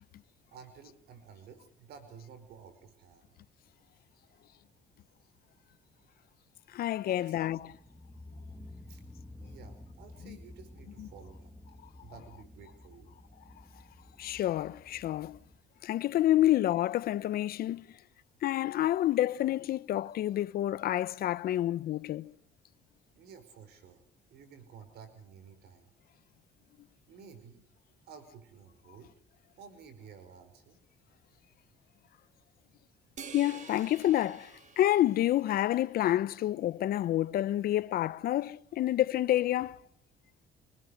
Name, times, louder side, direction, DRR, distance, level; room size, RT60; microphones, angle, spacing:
voice 1, 0.5-3.3 7.1-7.6 8.9-9.0 9.4-11.5 12.0-13.1 23.2-24.0 24.3-25.9 27.1-27.6 28.1-29.1 29.6-30.8, right 6 dB, 75° right, 5.4 m, -52 dB
voice 2, 6.7-7.6 10.3-10.4 11.0-11.1 14.2-15.4 15.8-17.9 18.4-22.3 33.3-39.8, left 13 dB, 65° left, 0.9 m, -28 dB
sound 1, 7.3-15.5, left 1 dB, 5° right, 2.5 m, -51 dB
sound 2, 33.2-35.9, right 6 dB, 45° right, 2.7 m, -49 dB
26.0 x 20.0 x 6.6 m
cardioid pair, 110°, 17 cm